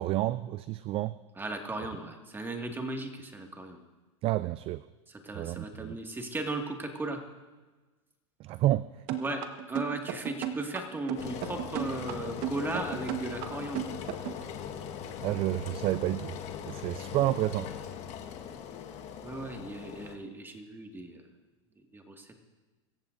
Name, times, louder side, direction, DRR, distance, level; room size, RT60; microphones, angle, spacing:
voice 1, 0.0-1.2 4.2-4.8 5.4-6.0 8.4-9.2 15.2-16.4 16.7-17.7, right 15 dB, 35° right, 16 dB, 0.3 m, -30 dB
voice 2, 1.4-3.8 5.1-7.2 9.2-9.4 9.7-13.9 19.2-21.2 21.9-22.4, right 2 dB, 10° right, 3 dB, 2.0 m, -36 dB
sound 1, 9.1-14.4, right 10 dB, 55° right, 1.4 m, -34 dB
Engine, 11.2-20.2, left 8 dB, 40° left, 1.5 m, -40 dB
25.0 x 14.5 x 2.6 m, 1.2 s
hypercardioid pair, 110°, 17 cm